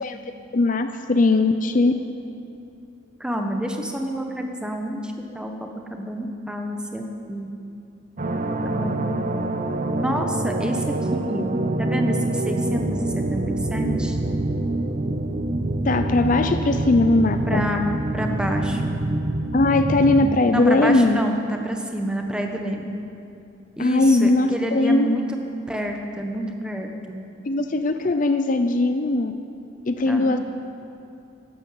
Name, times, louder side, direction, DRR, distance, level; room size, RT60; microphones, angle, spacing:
voice 1, 0.5-1.9 15.8-17.7 19.5-21.2 23.8-25.2 27.5-29.3 29.9-30.4, left 2 dB, 45° left, 8 dB, 0.5 m, -19 dB
voice 2, 3.2-7.5 8.6-9.0 10.0-11.5 11.8-14.2 17.5-17.9 18.1-19.0 20.5-22.9 23.8-25.4 25.7-27.2 30.1-30.4, equal, 5° right, 2 dB, 1.2 m, -28 dB
sound 1, 8.2-20.4, right 2 dB, 40° right, 0.7 m, -25 dB
12.5 x 12.5 x 7.9 m, 2.7 s
head